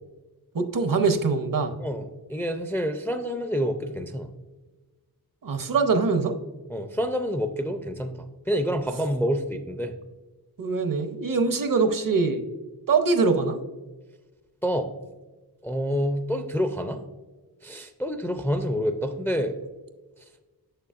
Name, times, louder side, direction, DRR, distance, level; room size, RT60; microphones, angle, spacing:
voice 1, 0.5-1.7 5.4-6.3 10.6-12.4 12.9-13.6, right 4 dB, 60° right, 8 dB, 0.7 m, -23 dB
voice 2, 1.8-4.3 6.7-9.9 14.6-14.9 15.6-17.0 17.6-19.6, equal, 5° left, 8 dB, 0.4 m, -28 dB
7.0 x 6.7 x 2.4 m, 1.2 s
wide cardioid pair, 95°, 38 cm